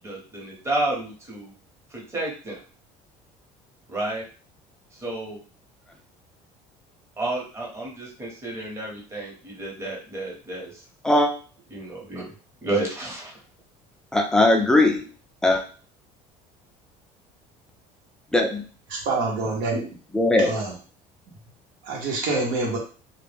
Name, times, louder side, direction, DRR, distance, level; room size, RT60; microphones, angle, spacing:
voice 1, 0.0-1.5 1.9-2.6 3.9-4.3 4.9-5.4 7.2-10.8 11.7-12.3 12.6-13.4, right 2 dB, 20° right, -2 dB, 0.9 m, -31 dB
voice 2, 14.1-15.0 15.4-15.6 18.3-18.6 20.1-20.5, left 2 dB, 5° left, 2 dB, 0.4 m, -19 dB
voice 3, 18.9-19.9 20.4-20.7 21.8-22.8, right 3 dB, 75° right, -1 dB, 0.8 m, -26 dB
2.2 x 2.1 x 3.2 m, 0.38 s
cardioid pair, 150°, 14 cm